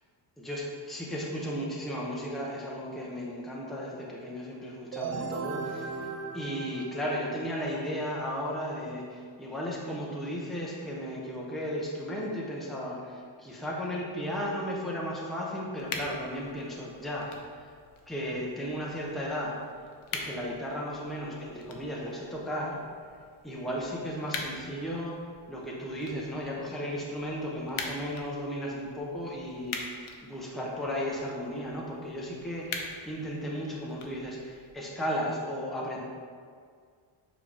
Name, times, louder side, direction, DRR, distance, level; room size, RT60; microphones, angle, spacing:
voice 1, 0.4-6.0 6.3-17.3 18.1-19.6 20.1-22.8 23.4-25.1 25.5-36.0, equal, ahead, -4 dB, 0.8 m, -35 dB
sound 1, 4.9-7.6, right 5 dB, 35° right, 0.5 m, -37 dB
sound 2, 15.8-34.7, left 4 dB, 80° left, 0.9 m, -44 dB
7.4 x 5.0 x 3.4 m, 2.1 s
cardioid pair, 150°, 49 cm